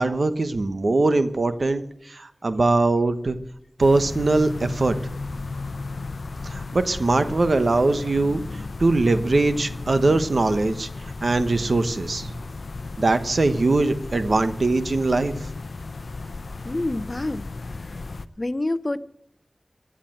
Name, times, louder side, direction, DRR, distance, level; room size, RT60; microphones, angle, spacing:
voice 1, 0.0-3.4 3.8-5.0 6.4-10.9 11.2-12.3 13.0-15.4, right 2 dB, 75° right, 1.1 m, -21 dB
sound 1, 3.8-18.3, left 3 dB, 85° left, 0.7 m, -34 dB
voice 2, 16.6-17.5 17.8-18.0 18.4-19.0, left 2 dB, 40° left, 0.8 m, -27 dB
16.0 x 10.0 x 7.9 m
wide cardioid pair, 40°, 0 cm